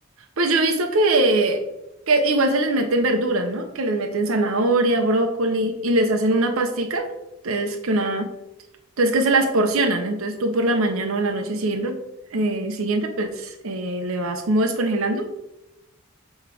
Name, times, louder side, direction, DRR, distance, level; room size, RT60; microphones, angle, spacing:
voice 1, 0.4-1.6 2.1-7.1 7.4-8.2 9.0-12.0 12.3-15.4, right 2 dB, 80° right, 5 dB, 0.7 m, -22 dB
6.8 x 3.1 x 4.8 m, 0.90 s
head